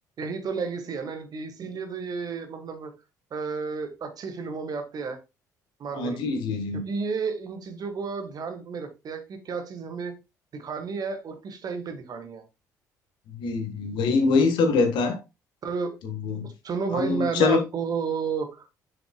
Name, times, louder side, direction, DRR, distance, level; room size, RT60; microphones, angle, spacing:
voice 1, 0.2-2.9 3.3-5.2 5.8-6.2 6.7-10.2 10.5-12.4 15.6-16.0 16.4-18.7, right 5 dB, 45° right, 1.4 m, -32 dB
voice 2, 5.9-6.8 13.3-15.2 16.0-16.5 16.9-17.6, left 4 dB, 60° left, 1.4 m, -24 dB
7.0 x 6.8 x 2.2 m
figure-of-eight pair, 50°, 9 cm